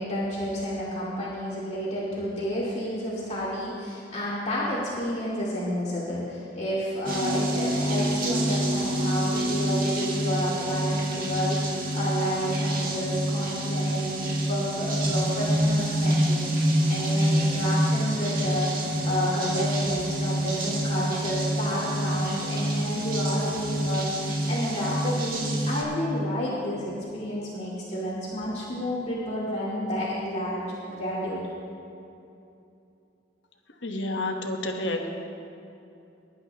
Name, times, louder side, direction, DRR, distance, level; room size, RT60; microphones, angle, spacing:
voice 1, 0.0-18.7 19.0-31.4, equal, 40° left, -7 dB, 2.4 m, -30 dB
sound 1, 7.1-25.8, right 1 dB, 50° right, 1.8 m, -27 dB
voice 2, 33.8-35.1, left 2 dB, 90° left, 3 dB, 1.2 m, -29 dB
21.5 x 11.0 x 2.9 m, 2.7 s
head